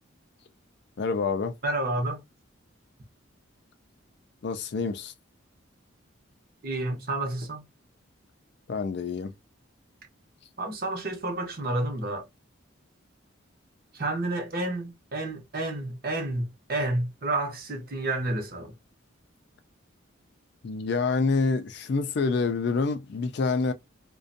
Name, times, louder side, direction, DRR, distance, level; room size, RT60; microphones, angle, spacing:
voice 1, 1.0-1.5 4.4-5.1 8.7-9.3 20.6-23.7, left 4 dB, 55° left, 0.4 m, -27 dB
voice 2, 1.6-2.2 6.6-7.6 10.6-12.3 13.9-18.7, right 2 dB, 45° right, 0.8 m, -30 dB
2.5 x 2.2 x 2.5 m
head